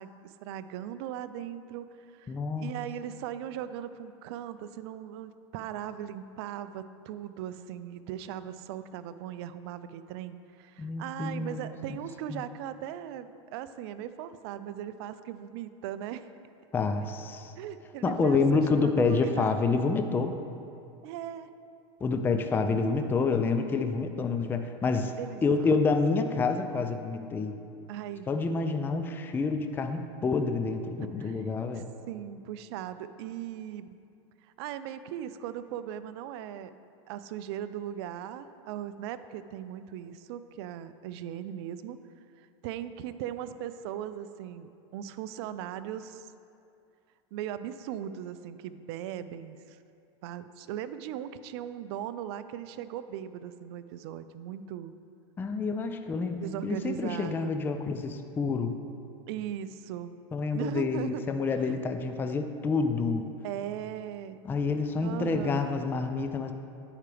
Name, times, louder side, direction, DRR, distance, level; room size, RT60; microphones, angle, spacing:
voice 1, 0.0-16.3 17.6-19.5 21.0-21.5 22.9-23.6 25.2-25.4 25.8-25.9 27.9-28.3 31.0-31.4 31.7-34.0 34.6-36.7 37.1-42.0 42.4-46.3 47.3-49.8 50.2-54.9 56.4-57.5 59.3-60.2 60.5-61.2 61.6-61.7 63.4-64.4 65.0-65.8, right 10 dB, 65° right, 13 dB, 0.4 m, -39 dB
voice 2, 2.3-2.7 10.8-11.7 12.3-12.4 16.7-17.5 18.0-20.3 22.0-25.1 25.4-27.5 28.3-31.9 55.4-58.8 60.3-63.3 64.4-66.5, left 4 dB, 15° left, 7 dB, 0.3 m, -28 dB
9.8 x 4.8 x 3.4 m, 2.5 s
hypercardioid pair, 115°, 15 cm